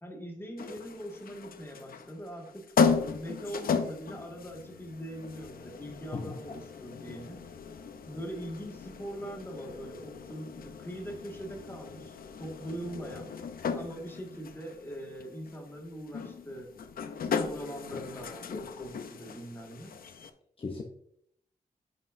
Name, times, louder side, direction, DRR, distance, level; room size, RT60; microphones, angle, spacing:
voice 1, 0.0-7.4 8.0-13.3 13.7-16.7 17.2-20.0, equal, 15° left, 0 dB, 1.8 m, -42 dB
sound 1, 0.6-20.3, left 6 dB, 90° left, 0.6 m, -36 dB
voice 2, 6.1-6.6 17.9-18.0 20.6-20.8, left 4 dB, 40° left, 1 dB, 0.8 m, -37 dB
9.4 x 5.4 x 2.6 m, 0.71 s
wide cardioid pair, 105°, 15 cm